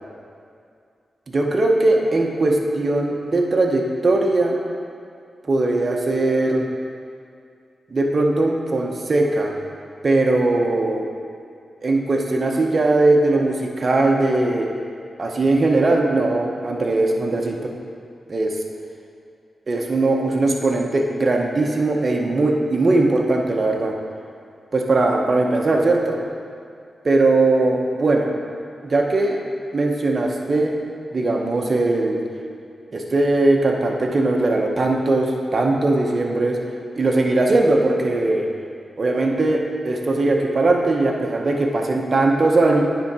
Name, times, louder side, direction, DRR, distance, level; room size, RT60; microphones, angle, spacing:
voice 1, 1.3-4.6 5.5-6.6 7.9-9.5 10.0-11.0 11.8-14.7 15.2-17.7 18.3-18.6 19.7-24.0 24.7-26.2 27.0-28.3 28.8-29.4 29.7-30.7 31.1-32.2 32.9-36.6 37.0-38.5 39.0-42.8, right 2 dB, 50° right, 1 dB, 0.9 m, -19 dB
9.7 x 3.8 x 4.2 m, 2.3 s
cardioid pair, 55°, 0 cm